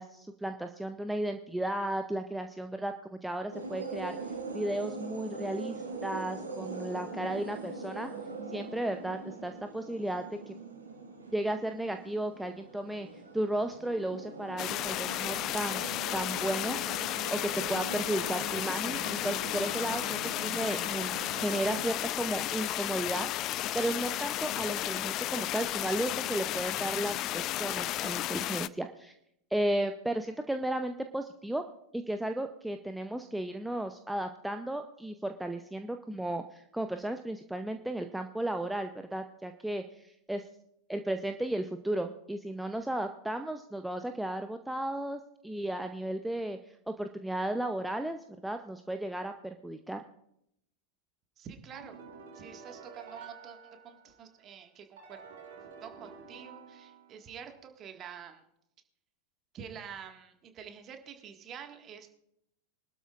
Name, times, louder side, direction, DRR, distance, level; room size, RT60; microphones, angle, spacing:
voice 1, 0.0-4.2 4.5-8.1 8.5-10.5 11.3-13.1 13.3-16.8 17.3-21.1 21.4-29.1 29.5-31.6 31.9-40.5 40.9-50.0, right 1 dB, 5° right, 7 dB, 0.6 m, -34 dB
sound 1, 3.5-21.9, right 3 dB, 75° right, 3.0 m, -42 dB
sound 2, 14.6-28.7, left 14 dB, 35° left, 0.4 m, -33 dB
voice 2, 51.4-52.0 52.3-55.2 55.8-58.4 59.5-62.1, right 7 dB, 30° right, 5 dB, 1.7 m, -47 dB
sound 3, 51.7-54.3 55.0-57.4, right 5 dB, 55° right, 4.6 m, -50 dB
24.0 x 12.0 x 2.5 m, 0.78 s
figure-of-eight pair, 90°, 0 cm